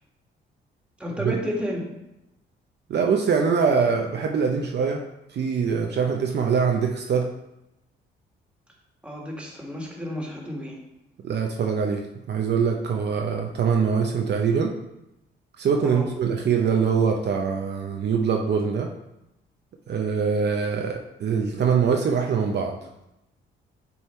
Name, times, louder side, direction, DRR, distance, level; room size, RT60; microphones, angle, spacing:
voice 1, 1.0-1.8 9.0-10.7 15.8-16.0, equal, 5° right, -1 dB, 1.7 m, -31 dB
voice 2, 2.9-5.0 5.3-7.3 11.2-14.7 15.6-18.9 19.9-22.8, right 6 dB, 55° right, 2 dB, 0.7 m, -23 dB
8.2 x 2.8 x 4.3 m, 0.89 s
cardioid pair, 80°, 21 cm